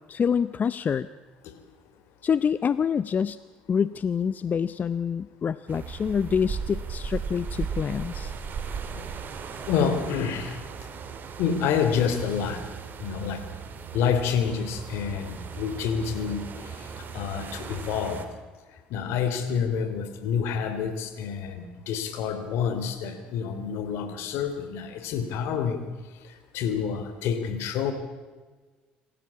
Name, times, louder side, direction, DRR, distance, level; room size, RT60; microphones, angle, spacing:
voice 1, 0.1-1.1 2.2-3.4 3.7-8.3, left 7 dB, 40° left, 16 dB, 0.6 m, -26 dB
sound 1, 5.7-18.3, right 6 dB, 50° right, 2.9 m, -37 dB
voice 2, 9.6-10.6 11.4-12.6 13.0-13.5 13.9-16.4 17.1-18.2 18.9-25.9 26.5-27.9, left 7 dB, 70° left, 10 dB, 3.1 m, -28 dB
27.0 x 15.0 x 8.5 m, 1.4 s
hypercardioid pair, 65°, 4 cm